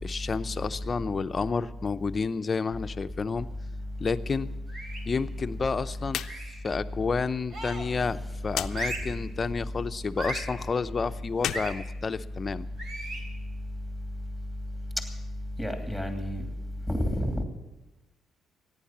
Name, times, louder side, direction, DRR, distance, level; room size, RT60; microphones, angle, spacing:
voice 1, 0.0-3.5 4.0-4.5 5.0-8.2 8.4-12.7, left 4 dB, 35° left, 11 dB, 0.6 m, -30 dB
sound 1, 4.7-5.2 6.2-6.6 7.5-8.0 8.7-9.2 10.2-10.6 11.5-11.8 12.8-13.3, right 2 dB, 60° right, 3.4 m, -37 dB
sound 2, 6.1-6.4 6.7-6.8 8.5-8.7 11.3-12.6, left 11 dB, 80° left, 0.5 m, -34 dB
voice 2, 15.6-16.5 16.9-17.4, equal, 5° right, 4 dB, 2.8 m, -29 dB
14.5 x 10.0 x 7.3 m, 1.1 s
cardioid pair, 90°, 0 cm